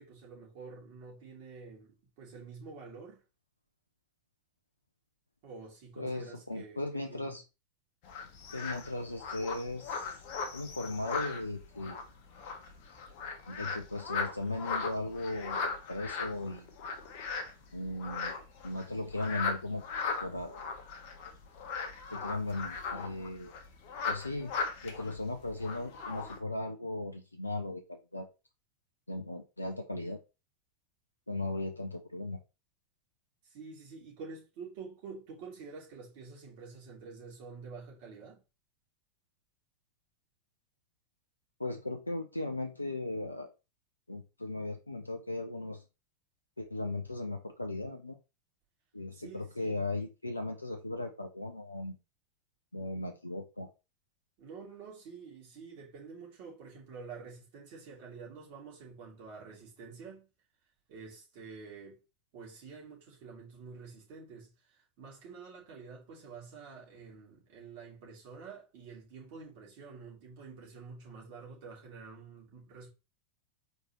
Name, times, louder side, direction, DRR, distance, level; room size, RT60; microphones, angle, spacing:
voice 1, 0.0-3.2 5.4-6.8 7.1-7.3 33.4-38.4 49.1-49.8 54.4-60.3 60.9-62.0 62.3-72.9, right 5 dB, 45° right, 2.8 m, -48 dB
voice 2, 6.0-7.4 8.5-10.2 10.5-12.0 13.5-16.7 17.7-18.3 18.6-19.8 20.2-20.7 22.1-23.5 24.1-24.5 24.8-28.3 29.1-30.2 31.3-32.4 41.6-43.5 44.1-45.8 46.6-48.2 48.9-52.0 52.7-53.7, left 2 dB, 85° left, 0.5 m, -37 dB
sound 1, 8.0-26.4, left 5 dB, 45° left, 1.0 m, -38 dB
4.6 x 3.8 x 3.0 m
figure-of-eight pair, 90°, 0 cm